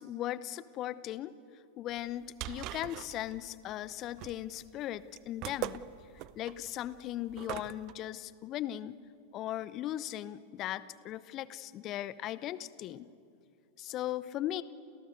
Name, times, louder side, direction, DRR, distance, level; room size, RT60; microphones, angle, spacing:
voice 1, 0.0-1.3 1.8-5.9 6.4-9.0 9.3-13.1 13.8-14.6, left 13 dB, 35° left, 18 dB, 0.8 m, -38 dB
sound 1, 2.0-7.9, right 15 dB, 40° right, 0.8 m, -42 dB
30.0 x 28.5 x 6.6 m, 2.5 s
figure-of-eight pair, 90°, 0 cm